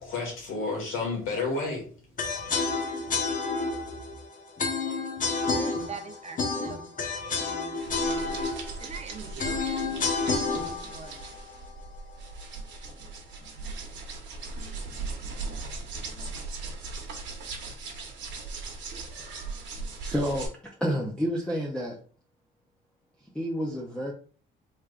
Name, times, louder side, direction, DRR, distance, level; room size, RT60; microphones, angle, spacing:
voice 1, 0.0-2.1, left 3 dB, 90° left, 1.6 m, -31 dB
sound 1, 2.2-12.3, left 4 dB, 40° left, 0.9 m, -30 dB
voice 2, 5.6-8.4 8.8-11.1, right 5 dB, 35° right, 0.7 m, -44 dB
sound 2, 7.8-20.5, right 3 dB, 65° right, 1.1 m, -39 dB
voice 3, 20.0-22.0 23.3-24.1, equal, 5° left, 0.6 m, -29 dB
3.4 x 3.3 x 2.4 m
cardioid pair, 90°, 20 cm